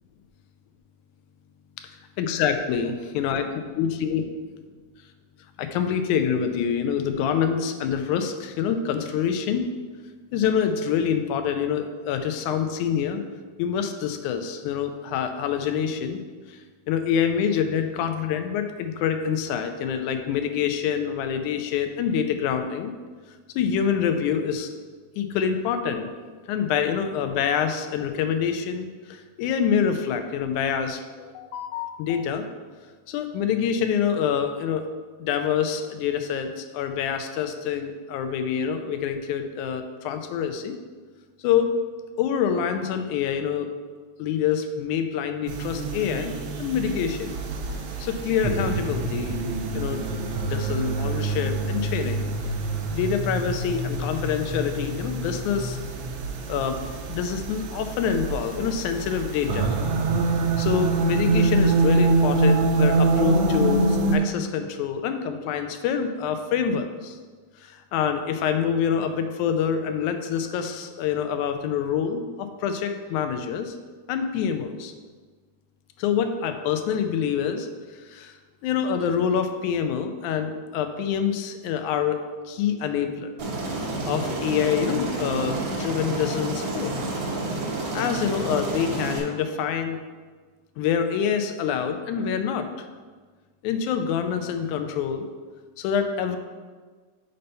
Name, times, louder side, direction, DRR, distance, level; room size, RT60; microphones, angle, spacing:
voice 1, 2.2-3.5 3.8-4.2 5.6-9.7 10.3-13.2 13.6-16.2 16.5-16.6 16.9-22.9 23.6-24.7 25.2-26.1 26.5-32.5 33.1-34.8 35.2-40.8 41.4-41.8 42.2-43.7 44.2-47.3 48.0-49.4 49.7-50.0 50.4-52.3 52.9-55.8 56.5-56.8 57.1-59.7 60.6-67.2 67.6-73.8 74.1-74.9 76.0-78.4 78.6-82.2 82.5-83.3 84.1-86.9 87.9-90.0 90.8-92.9 93.6-95.3 95.8-96.4, left 7 dB, 85° left, 7 dB, 2.0 m, -26 dB
sound 1, 45.5-64.2, right 3 dB, 80° right, 1.2 m, -25 dB
Aircraft, 83.4-89.2, right 2 dB, 65° right, 1.2 m, -29 dB
5.5 x 4.3 x 5.3 m, 1.5 s
omnidirectional pair, 3.5 m